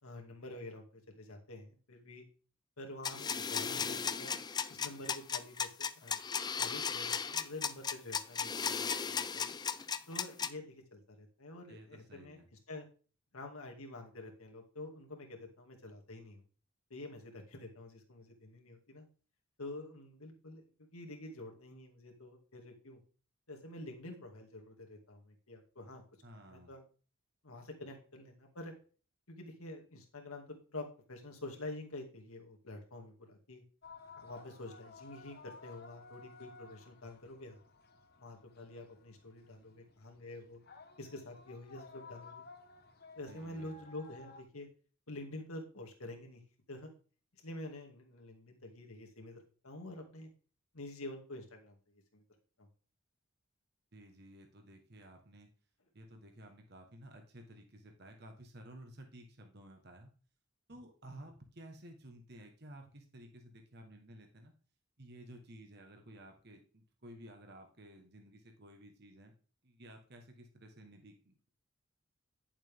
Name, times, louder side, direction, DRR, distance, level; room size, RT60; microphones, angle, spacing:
voice 1, 0.0-2.2 2.8-4.4 4.7-6.2 6.6-9.5 10.1-12.4 12.7-12.9 13.3-16.4 16.9-19.1 19.6-23.0 23.5-26.0 26.3-26.8 27.4-28.7 29.3-33.6 34.2-37.6 38.2-40.6 41.0-42.4 43.2-44.7 45.1-46.4 46.7-46.9 47.4-50.3 50.7-51.8 52.1-52.2 52.6-52.7, left 2 dB, 80° left, 2 dB, 2.3 m, -48 dB
sound 1, 3.0-10.5, left 6 dB, 20° left, 0.4 m, -36 dB
voice 2, 11.7-12.4 26.2-26.7 43.3-43.8 53.9-55.5 55.9-60.1 60.7-64.5 65.0-69.3 69.6-71.5, right 1 dB, 50° right, 4 dB, 1.3 m, -54 dB
sound 2, 33.8-44.4, left 4 dB, 45° left, 1.2 m, -56 dB
11.0 x 7.4 x 3.5 m, 0.39 s
head